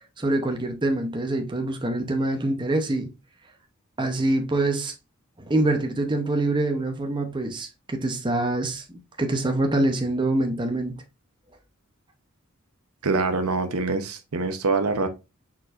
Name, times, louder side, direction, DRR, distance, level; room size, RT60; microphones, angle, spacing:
voice 1, 0.0-3.1 4.0-4.9 5.5-11.0, right 2 dB, 20° right, 0.8 m, -25 dB
voice 2, 13.0-15.1, right 3 dB, 85° right, 0.8 m, -24 dB
4.4 x 4.3 x 2.5 m
head